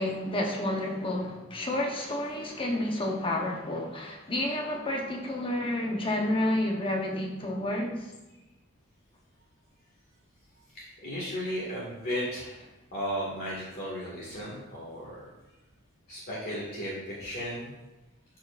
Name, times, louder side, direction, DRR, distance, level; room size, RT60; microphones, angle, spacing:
voice 1, 0.0-8.1, left 1 dB, 25° left, 0 dB, 0.9 m, -30 dB
voice 2, 10.7-12.6 12.9-15.2 16.1-17.7, equal, 45° left, -7 dB, 1.9 m, -35 dB
12.0 x 4.7 x 2.5 m, 1.0 s
head